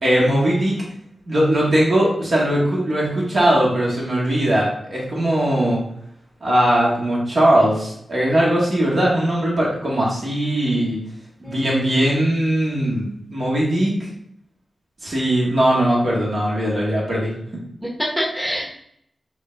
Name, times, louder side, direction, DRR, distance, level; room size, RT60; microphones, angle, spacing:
voice 1, 0.0-0.8 1.3-5.8 6.4-11.0 11.4-13.9 15.0-17.3, right 1 dB, 60° right, -5 dB, 1.8 m, -19 dB
voice 2, 11.4-12.0 17.8-18.7, equal, 5° right, -2 dB, 1.1 m, -26 dB
5.0 x 2.6 x 3.4 m, 0.71 s
cardioid pair, 45°, 0 cm